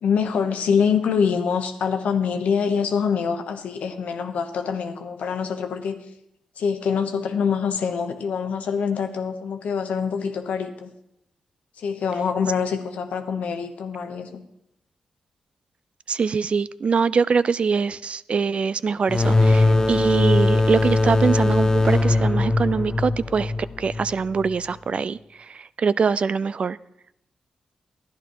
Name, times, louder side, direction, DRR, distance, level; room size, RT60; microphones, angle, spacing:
voice 1, 0.0-6.0 6.6-10.9 11.8-14.4, left 6 dB, 80° left, 6 dB, 1.1 m, -25 dB
voice 2, 16.1-23.5 23.8-26.8, right 5 dB, 55° right, 17 dB, 0.4 m, -23 dB
sound 1, 19.1-24.5, left 2 dB, 25° left, 0.8 m, -20 dB
11.5 x 10.0 x 4.7 m, 0.80 s
supercardioid pair, 45°, 2 cm